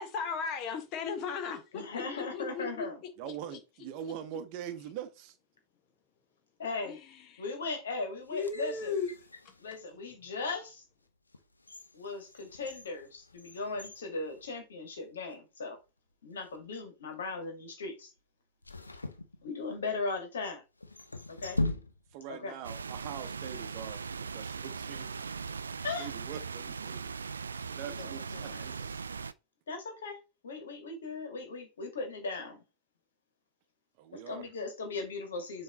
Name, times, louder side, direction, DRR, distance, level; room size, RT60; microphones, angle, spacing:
voice 1, 0.0-2.9 6.9-7.0 7.3-7.4 8.3-9.1, left 5 dB, 40° left, 1.4 m, -35 dB
voice 2, 1.7-3.0 6.6-7.0 7.4-8.9 9.6-10.8 11.9-15.8 16.2-18.1 19.4-20.6 21.3-21.6 22.3-22.6 25.8-26.1 27.8-28.7 29.7-30.2 30.4-32.6 34.1-35.6, left 3 dB, 65° left, 2.0 m, -38 dB
voice 3, 3.2-5.4 22.1-25.1 26.0-27.2 27.7-29.0 34.0-34.5, right 9 dB, 45° right, 0.8 m, -43 dB
sound 1, 8.2-10.0 10.6-10.7 11.3-15.0 15.3-15.4 16.2-16.6 18.6-19.9 20.8-22.3 22.6-22.7, left 2 dB, 80° left, 0.6 m, -40 dB
sound 2, 22.6-29.3, right 5 dB, 75° right, 0.3 m, -39 dB
7.2 x 3.3 x 4.1 m
figure-of-eight pair, 90°, 0 cm